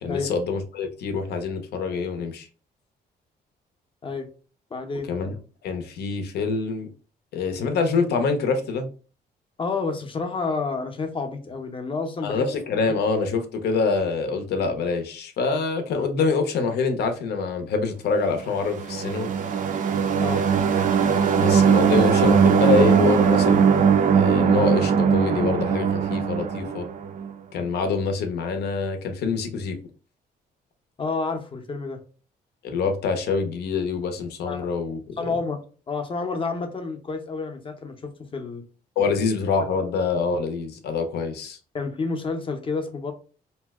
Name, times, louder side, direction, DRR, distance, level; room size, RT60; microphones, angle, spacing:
voice 1, 0.0-2.5 5.1-5.4 5.6-6.9 7.3-8.9 12.2-19.3 21.3-23.7 24.1-26.8 27.5-29.8 32.6-35.0 39.0-41.6, left 4 dB, 80° left, 6 dB, 0.6 m, -25 dB
voice 2, 4.7-5.1 9.6-12.5 12.9-13.0 20.2-20.4 31.0-32.0 34.5-34.7 35.2-35.6 35.9-38.6 41.7-43.1, left 4 dB, 30° left, 6 dB, 0.6 m, -29 dB
sound 1, 18.6-27.3, right 7 dB, 55° right, 0.4 m, -20 dB
2.7 x 2.1 x 3.5 m, 0.38 s
cardioid pair, 115°, 17 cm